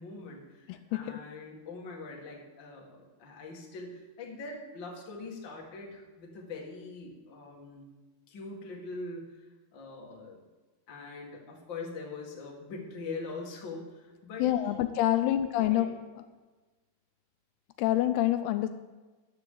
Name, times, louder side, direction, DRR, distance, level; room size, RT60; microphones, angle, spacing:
voice 1, 0.0-7.9 8.3-9.5 9.7-10.4 10.9-14.7 15.3-15.9, left 3 dB, 40° left, -2 dB, 1.8 m, -43 dB
voice 2, 0.7-1.2 14.4-16.3 17.8-18.7, left 13 dB, 85° left, 9 dB, 2.5 m, -27 dB
13.0 x 10.0 x 3.8 m, 1.2 s
omnidirectional pair, 4.6 m